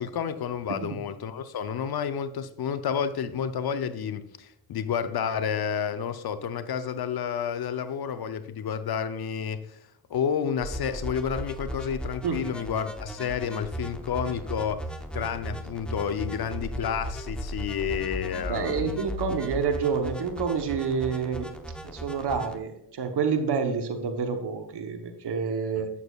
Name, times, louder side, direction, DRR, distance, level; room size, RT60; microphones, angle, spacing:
voice 1, 0.0-9.8 10.1-14.8 15.1-19.0 25.8-25.9, left 7 dB, 60° left, 0.7 m, -30 dB
sound 1, 10.6-22.6, equal, ahead, 0.9 m, -36 dB
voice 2, 18.5-21.5 21.8-25.9, right 5 dB, 65° right, 1.1 m, -28 dB
8.3 x 6.9 x 2.4 m
supercardioid pair, 55°, 44 cm